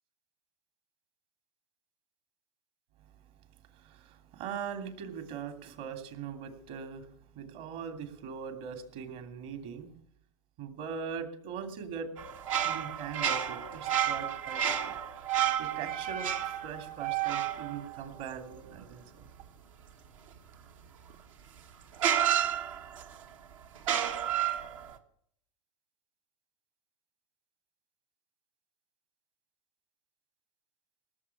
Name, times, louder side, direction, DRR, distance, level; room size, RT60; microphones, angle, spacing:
voice 1, 3.7-9.9 10.6-12.1 12.6-14.9 15.6-16.3 16.6-19.3, right 7 dB, 60° right, 8 dB, 3.0 m, -41 dB
sound 1, 12.2-18.8 21.1-21.2 22.0-23.2 23.8-24.9, right 10 dB, 80° right, 1.8 m, -31 dB
18.5 x 7.2 x 8.4 m, 0.67 s
hypercardioid pair, 105°, 16 cm